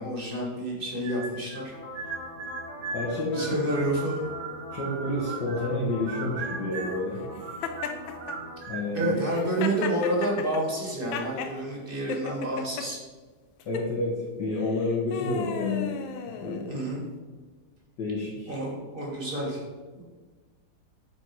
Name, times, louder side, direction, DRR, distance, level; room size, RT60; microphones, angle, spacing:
voice 1, 0.0-1.7 3.3-4.3 8.9-13.0 16.7-17.0 18.5-19.6 20.0-20.1, right 1 dB, 30° right, -2 dB, 1.7 m, -29 dB
sound 1, 1.0-1.6 1.9-5.8 6.1-7.0 7.4-9.2, right 5 dB, 65° right, 1.2 m, -38 dB
sound 2, 1.7-8.6, left 2 dB, 40° left, 1.3 m, -43 dB
voice 2, 2.9-3.7 4.7-7.3 8.7-9.1 13.7-15.9 16.4-16.7 18.0-18.5, left 2 dB, 65° left, -5 dB, 1.9 m, -29 dB
Laughter, 7.6-8.4 9.2-11.5 12.1-12.9 13.6-13.9 14.6-16.8, left 6 dB, 85° left, 1.4 m, -34 dB
7.9 x 4.4 x 4.6 m, 1.3 s
omnidirectional pair, 2.1 m